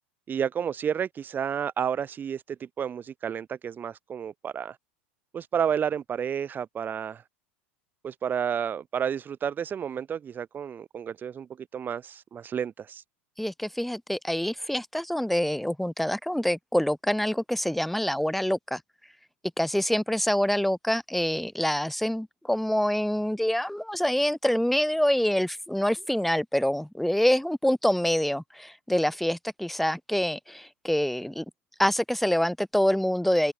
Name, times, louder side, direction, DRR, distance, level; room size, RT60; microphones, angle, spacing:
voice 1, 0.3-4.8 5.3-7.2 8.0-13.0, right 8 dB, 30° right, 4.6 m, -31 dB
voice 2, 13.4-18.8 19.6-31.4 31.8-33.5, equal, ahead, 6.0 m, -26 dB
hypercardioid pair, 100°, 6 cm